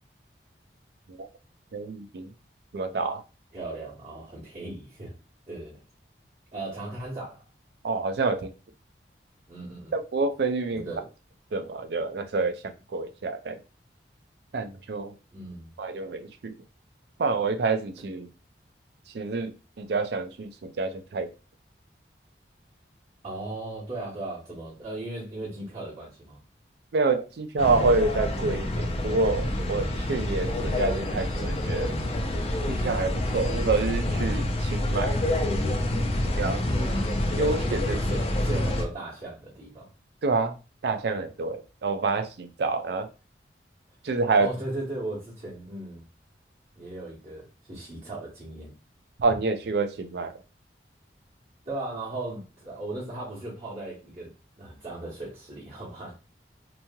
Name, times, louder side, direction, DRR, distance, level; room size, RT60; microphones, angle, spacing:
voice 1, 1.7-2.3 2.7-3.2 7.8-8.5 9.9-10.9 11.5-13.6 14.5-15.1 15.8-16.5 17.2-18.3 19.1-21.3 26.9-31.9 32.7-35.1 35.9-36.6 37.4-38.0 40.2-40.5 40.8-43.1 44.0-44.5 49.2-50.3, right 3 dB, 65° right, 0.4 m, -27 dB
voice 2, 3.5-5.1 5.5-5.8 6.5-7.4 9.5-9.9 10.7-11.1 15.3-15.7 23.2-26.4 36.6-37.6 37.9-39.9 44.4-46.0 46.7-48.7 51.6-56.1, right 2 dB, 40° right, 1.2 m, -37 dB
sound 1, 27.6-38.8, left 1 dB, 35° left, 0.4 m, -27 dB
2.9 x 2.7 x 2.3 m
head